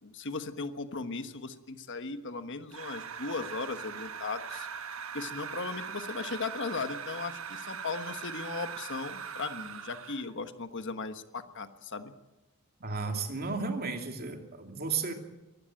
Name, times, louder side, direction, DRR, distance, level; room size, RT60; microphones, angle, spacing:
voice 1, 0.0-4.7 5.1-12.1, left 4 dB, 55° left, 9 dB, 1.3 m, -37 dB
sound 1, 2.7-10.3, right 7 dB, 65° right, 1.3 m, -41 dB
voice 2, 12.8-15.1, right 4 dB, 45° right, 4 dB, 2.8 m, -33 dB
24.0 x 15.0 x 9.0 m, 1.1 s
head